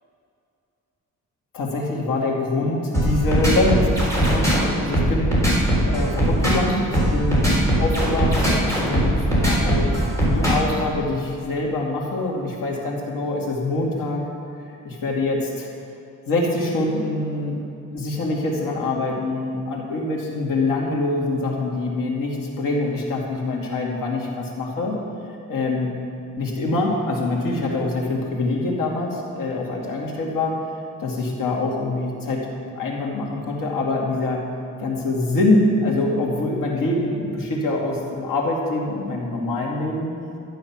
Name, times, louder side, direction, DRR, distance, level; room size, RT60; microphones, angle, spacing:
voice 1, 1.5-7.5 7.8-14.2 14.8-15.7 16.3-17.6 17.9-25.0 25.5-25.9 26.4-30.6 31.0-32.5 32.8-34.4 34.8-40.1, left 2 dB, 85° left, -2 dB, 2.5 m, -24 dB
sound 1, 2.9-10.7, right 1 dB, 10° left, 3.9 m, -19 dB
12.5 x 10.5 x 6.0 m, 2.6 s
wide cardioid pair, 165°, 32 cm